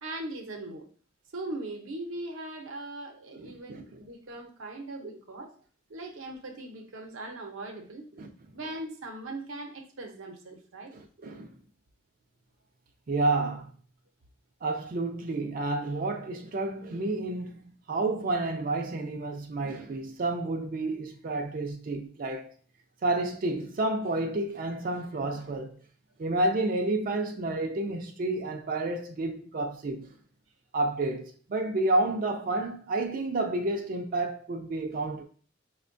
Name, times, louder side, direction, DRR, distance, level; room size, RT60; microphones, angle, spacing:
voice 1, 0.0-0.9 1.3-5.5 5.9-8.1 8.5-10.9, right 2 dB, 85° right, 0.7 m, -40 dB
voice 2, 10.9-11.5 13.1-13.7 14.6-22.5 23.0-25.8 26.2-30.1 30.7-35.2, right 2 dB, 45° right, 0.4 m, -30 dB
5.1 x 2.2 x 2.5 m
head